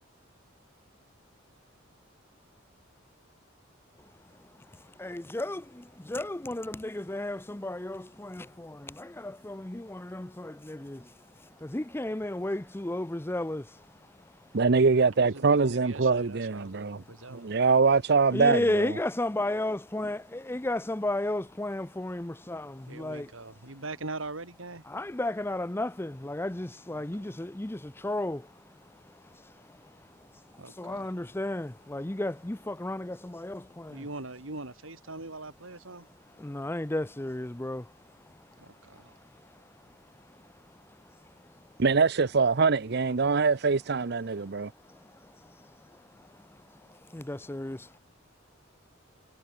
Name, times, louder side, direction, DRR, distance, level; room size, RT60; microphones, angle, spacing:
voice 1, 4.7-14.1 14.4-14.5 18.3-23.3 24.9-34.0 36.4-37.9 39.0-39.7 41.2-41.5 44.6-48.0, left 1 dB, 10° left, 0.6 m, -34 dB
voice 2, 14.5-17.0 17.3-19.0 41.8-44.7, right 4 dB, 55° right, 0.7 m, -24 dB
voice 3, 15.2-17.5 22.9-24.8 26.9-27.4 30.6-31.2 33.9-36.1 38.6-39.2, right 2 dB, 80° right, 3.9 m, -42 dB
head